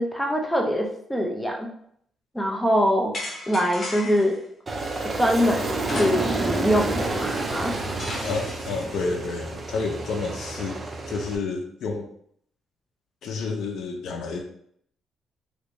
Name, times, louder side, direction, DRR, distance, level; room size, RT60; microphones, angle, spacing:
voice 1, 0.0-1.7 2.3-3.1 3.5-4.4 5.2-7.7, equal, 5° left, 1 dB, 0.7 m, -23 dB
sound 1, 3.1-4.4 5.8-6.6 6.9-7.0 8.0-8.8, left 1 dB, 40° left, 0.9 m, -34 dB
Aircraft, 4.7-11.4, right 2 dB, 30° right, 0.5 m, -29 dB
voice 2, 8.2-10.8 11.1-12.1 13.2-14.4, left 4 dB, 70° left, 4 dB, 0.6 m, -30 dB
3.2 x 2.7 x 3.1 m, 0.67 s
cardioid pair, 90°, 0 cm